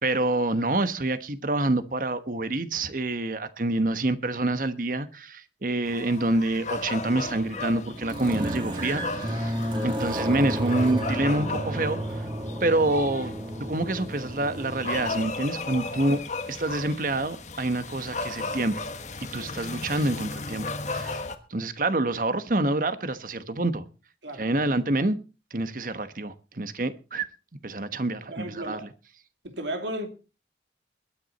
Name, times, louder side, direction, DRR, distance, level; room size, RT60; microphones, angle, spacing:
voice 1, 0.0-9.5 9.8-12.3 12.6-13.3 13.6-16.2 16.5-18.7 19.2-21.2 21.5-23.8 24.3-25.2 25.5-27.3 27.6-28.9, right 2 dB, 50° right, 1.2 m, -27 dB
sound 1, 5.8-21.3, left 3 dB, 40° left, 1.4 m, -36 dB
sound 2, 6.7-15.3, equal, 25° right, 2.8 m, -32 dB
voice 2, 28.3-28.9 29.4-30.1, right 1 dB, 85° right, 2.9 m, -34 dB
21.0 x 9.6 x 4.2 m
head